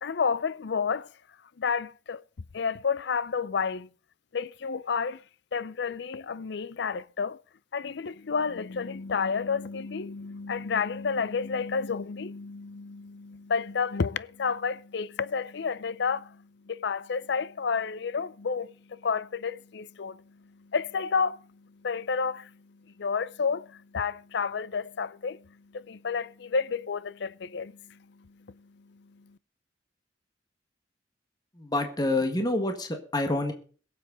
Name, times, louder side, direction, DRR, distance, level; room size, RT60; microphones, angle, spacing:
voice 1, 0.0-1.1 1.6-2.2 2.5-3.9 4.3-5.2 5.5-7.4 7.7-22.6 23.0-29.4, left 5 dB, 65° left, 0.5 m, -31 dB
voice 2, 31.6-33.5, left 2 dB, 20° left, 1.6 m, -27 dB
22.0 x 7.7 x 4.0 m
head